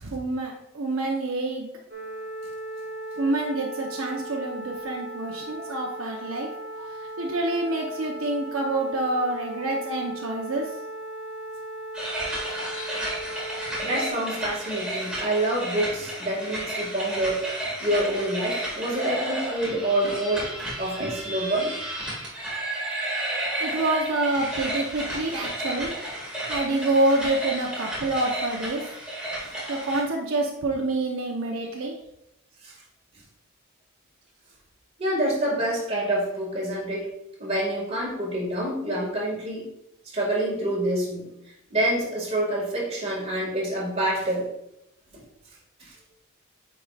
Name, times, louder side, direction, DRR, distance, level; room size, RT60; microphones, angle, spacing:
voice 1, 0.0-1.7 3.2-6.5 7.2-10.7 23.6-25.9 26.5-28.8 29.7-31.9, right 2 dB, 75° right, 0 dB, 0.8 m, -27 dB
sound 1, 1.9-14.1, right 1 dB, 50° right, 1.5 m, -37 dB
sound 2, 11.9-30.0, right 1 dB, 5° right, 2.1 m, -32 dB
voice 2, 13.8-17.5 17.8-20.5 20.8-21.7 32.6-32.7 35.0-37.1 37.4-39.7 40.1-41.3 41.7-44.4, right 1 dB, 30° right, -4 dB, 2.0 m, -27 dB
9.0 x 4.8 x 2.4 m, 0.83 s
head